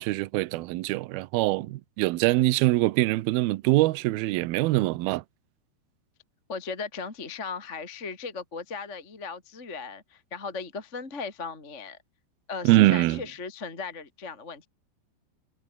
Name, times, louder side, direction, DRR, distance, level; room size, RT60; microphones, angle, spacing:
voice 1, 0.0-5.2 12.6-13.2, right 19 dB, 75° right, 2.3 m, -23 dB
voice 2, 6.5-12.0 12.5-14.7, left 4 dB, 20° left, 2.7 m, -37 dB
omnidirectional pair, 5.1 m